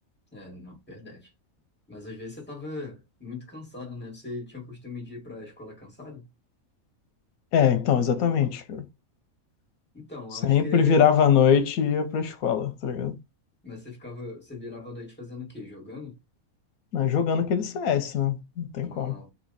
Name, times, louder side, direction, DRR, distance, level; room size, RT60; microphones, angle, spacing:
voice 1, 0.3-1.3 1.9-6.2 9.9-11.0 13.6-16.2 18.8-19.3, left 3 dB, 5° left, 1.7 m, -40 dB
voice 2, 7.5-8.8 10.4-13.1 16.9-19.1, left 8 dB, 85° left, 1.2 m, -22 dB
4.2 x 2.7 x 4.0 m
omnidirectional pair, 1.5 m